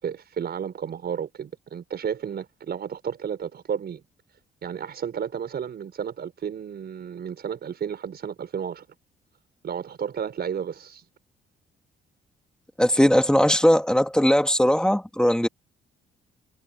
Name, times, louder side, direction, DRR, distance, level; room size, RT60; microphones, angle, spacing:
voice 1, 0.0-4.0 4.6-8.9 9.6-11.1, right 8 dB, 55° right, 5.4 m, -32 dB
voice 2, 12.8-15.5, equal, 5° left, 2.4 m, -19 dB
cardioid pair, 90°, 20 cm